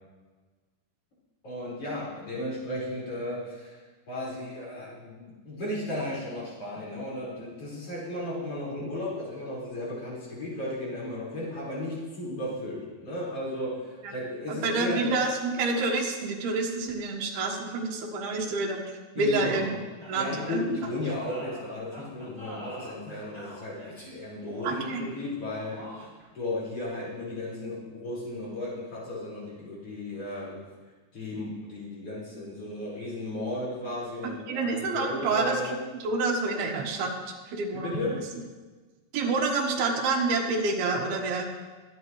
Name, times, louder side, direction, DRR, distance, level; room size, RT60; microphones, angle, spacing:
voice 1, 1.4-15.1 19.2-19.8 20.1-30.6 31.1-35.8 37.7-38.2, left 1 dB, 40° left, -7 dB, 5.7 m, -35 dB
voice 2, 14.5-18.8 19.2-19.7 20.1-20.6 24.6-25.1 34.5-35.8 36.0-37.1 37.5-38.2 39.1-41.5, right 3 dB, 80° right, 0 dB, 3.4 m, -28 dB
sound 1, 20.0-26.3, equal, 10° left, 4.4 m, -44 dB
24.5 x 9.3 x 3.2 m, 1.3 s
omnidirectional pair, 4.4 m